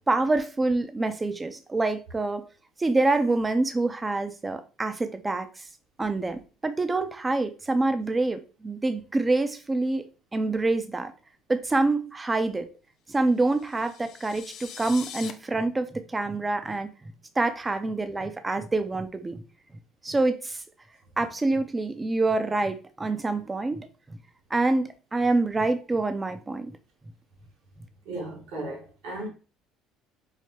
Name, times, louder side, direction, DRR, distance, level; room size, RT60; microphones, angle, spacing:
voice 1, 0.1-2.5 2.8-5.7 6.0-11.1 11.5-12.7 13.1-16.9 17.4-19.4 20.0-20.6 21.2-24.2 24.5-26.7, right 2 dB, 20° right, 0.5 m, -26 dB
sound 1, 13.4-15.3, left 8 dB, 60° left, 0.5 m, -42 dB
voice 2, 28.0-29.3, right 1 dB, 80° right, 1.5 m, -35 dB
4.7 x 2.1 x 2.9 m
supercardioid pair, 80°, 0 cm